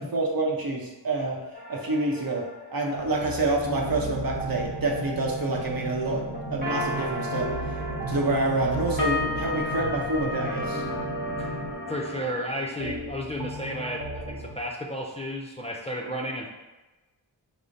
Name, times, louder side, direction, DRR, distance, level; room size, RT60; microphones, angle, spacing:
voice 1, 0.1-1.4 1.7-6.2 6.5-7.5 8.1-10.8, right 2 dB, 55° right, -1 dB, 0.8 m, -27 dB
sound 1, 1.5-3.6 6.3-12.3, left 1 dB, 20° right, 0.9 m, -33 dB
sound 2, 3.0-14.5, right 2 dB, 80° right, 0.9 m, -38 dB
sound 3, 3.6-11.7, left 1 dB, 35° left, 0.9 m, -37 dB
voice 2, 11.9-16.5, equal, 15° left, -2 dB, 0.4 m, -33 dB
4.9 x 2.1 x 3.9 m, 1.1 s
wide cardioid pair, 85°, 43 cm